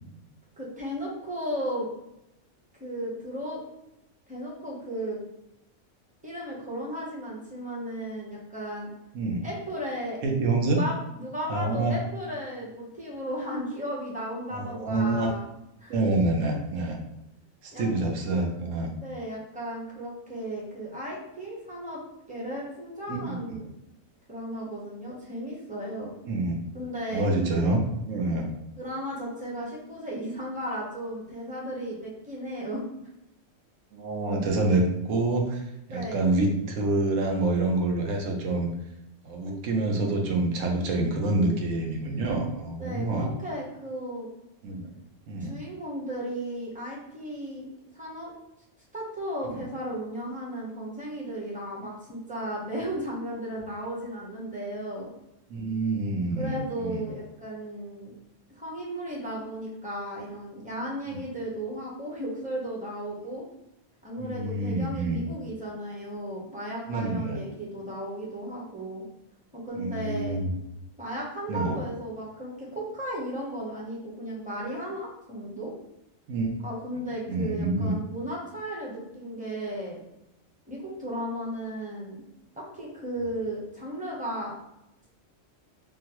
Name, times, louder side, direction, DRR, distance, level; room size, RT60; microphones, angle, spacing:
voice 1, 0.6-1.9 2.8-3.6 4.3-5.2 6.2-8.9 9.4-10.2 10.7-15.5 15.8-15.9 17.7-17.9 19.0-22.0 22.3-23.7 24.3-26.1 26.7-27.3 28.8-32.8 35.9-36.2 42.8-44.3 45.4-48.3 48.9-55.1 56.3-58.1 58.5-63.4 64.0-69.0 69.5-70.4 71.0-75.7 76.6-80.0 80.7-82.2 82.6-84.6, equal, 10° right, -4 dB, 0.6 m, -35 dB
voice 2, 10.2-10.8 11.5-12.0 14.5-15.3 15.9-17.0 17.6-18.9 23.1-23.6 26.2-26.6 27.1-27.8 28.1-28.5 33.9-38.7 39.2-43.3 44.6-44.9 45.3-45.5 49.6-49.7 55.5-57.1 61.1-61.2 64.2-65.2 66.9-67.4 69.7-70.5 71.5-71.8 76.3-76.5 77.3-78.0, right 2 dB, 85° right, 1 dB, 1.1 m, -27 dB
3.8 x 2.1 x 2.9 m, 0.86 s
omnidirectional pair, 1.3 m